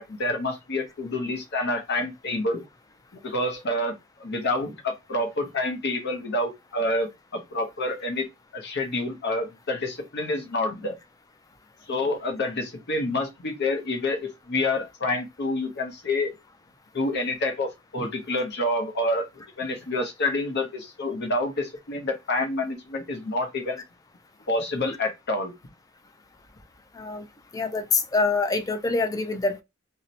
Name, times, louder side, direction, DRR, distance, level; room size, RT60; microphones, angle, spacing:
voice 1, 0.0-2.6 3.2-3.9 4.2-8.3 8.5-11.0 11.9-16.3 16.9-19.3 19.6-23.8 24.5-25.5, left 2 dB, 55° left, 0.7 m, -28 dB
voice 2, 27.5-29.6, left 3 dB, 15° left, 0.3 m, -25 dB
2.7 x 2.0 x 2.7 m
head